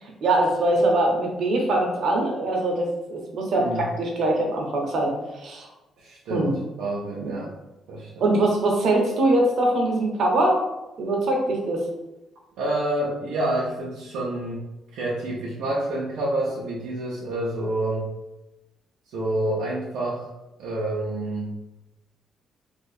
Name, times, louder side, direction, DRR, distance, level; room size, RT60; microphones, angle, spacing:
voice 1, 0.0-5.7 6.3-6.5 7.2-7.3 8.2-10.6 11.0-11.9, right 1 dB, 65° right, 0 dB, 0.9 m, -23 dB
voice 2, 6.0-6.5 6.8-7.5 7.9-8.2 12.6-14.6 14.9-18.1 19.1-20.3 20.6-21.5, right 1 dB, 90° right, -5 dB, 0.6 m, -28 dB
2.7 x 2.4 x 4.1 m, 0.97 s
cardioid pair, 90°, 0 cm